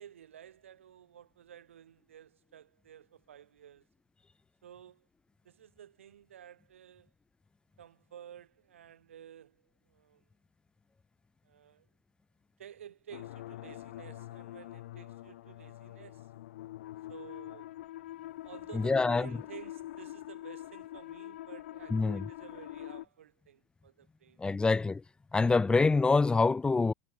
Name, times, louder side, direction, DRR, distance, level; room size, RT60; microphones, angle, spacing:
voice 1, 0.0-3.9 4.6-5.1 5.4-7.1 7.8-10.2 11.4-11.9 12.6-16.3 17.1-17.8 18.3-24.5, right 10 dB, 80° right, 7.7 m, -53 dB
sound 1, 13.1-23.0, left 15 dB, 70° left, 0.9 m, -45 dB
voice 2, 18.7-19.3 21.9-22.3 24.4-25.0 25.3-26.9, left 3 dB, 15° left, 0.9 m, -26 dB
hypercardioid pair, 90°, 7 cm